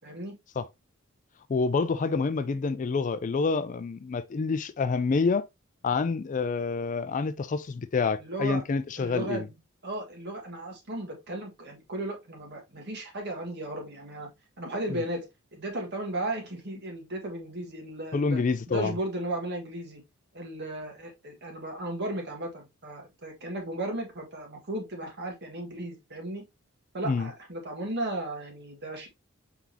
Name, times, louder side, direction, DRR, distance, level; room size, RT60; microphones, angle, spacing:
voice 1, 0.0-0.3 8.2-8.6 9.0-9.6 9.8-14.3 14.6-18.4 18.7-20.0 20.3-26.4 26.9-29.1, right 1 dB, 55° right, 1.7 m, -35 dB
voice 2, 1.5-5.4 5.8-9.5 18.1-18.9 27.0-27.3, left 4 dB, 35° left, 0.4 m, -27 dB
4.7 x 3.9 x 2.8 m
head